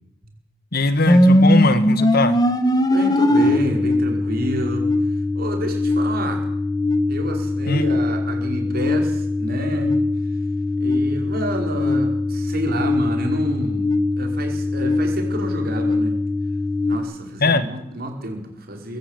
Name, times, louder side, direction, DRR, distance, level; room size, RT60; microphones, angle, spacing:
voice 1, 0.7-2.4 7.7-7.8 17.4-17.6, left 2 dB, 55° left, 12 dB, 1.5 m, -19 dB
sound 1, 1.1-17.0, left 1 dB, 20° left, 1.7 m, -21 dB
voice 2, 2.9-6.5 7.1-10.0 10.8-16.1 16.9-19.0, right 1 dB, 55° right, 3 dB, 5.1 m, -29 dB
23.5 x 13.5 x 9.0 m, 0.82 s
head